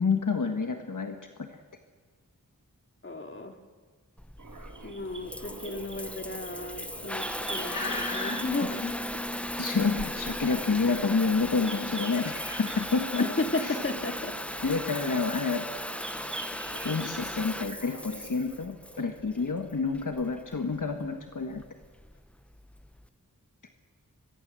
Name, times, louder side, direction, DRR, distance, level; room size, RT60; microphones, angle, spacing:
voice 1, 0.0-1.6 7.6-8.4 9.6-13.3 13.6-13.8 14.6-15.9 16.8-21.6, left 4 dB, 70° left, 5 dB, 1.6 m, -29 dB
voice 2, 3.0-3.6 4.8-9.0 13.2-14.3, left 2 dB, 40° left, 4 dB, 2.5 m, -34 dB
Water tap faucet / Bathtub (filling or washing) / Trickle dribble, 4.2-23.1, left 1 dB, 5° left, 0.7 m, -37 dB
sound 1, 4.4-18.5, right 3 dB, 65° right, 2.6 m, -44 dB
24.5 x 22.0 x 7.7 m, 1.5 s
wide cardioid pair, 85°, 33 cm